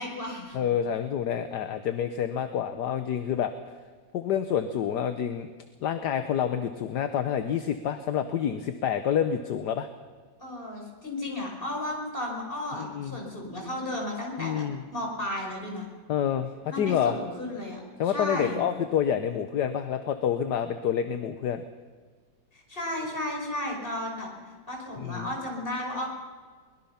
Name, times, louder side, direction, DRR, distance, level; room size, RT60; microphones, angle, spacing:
voice 1, 0.0-0.6 10.4-14.6 14.9-15.9 16.7-18.6 22.5-24.3 24.7-26.1, left 1 dB, 25° left, 0 dB, 5.4 m, -34 dB
voice 2, 0.5-3.5 4.1-5.5 5.8-9.9 12.8-13.2 14.4-14.8 16.1-17.2 18.0-21.6 25.0-25.3, left 9 dB, 65° left, 9 dB, 1.4 m, -28 dB
23.0 x 21.5 x 5.8 m, 1.5 s
omnidirectional pair, 2.1 m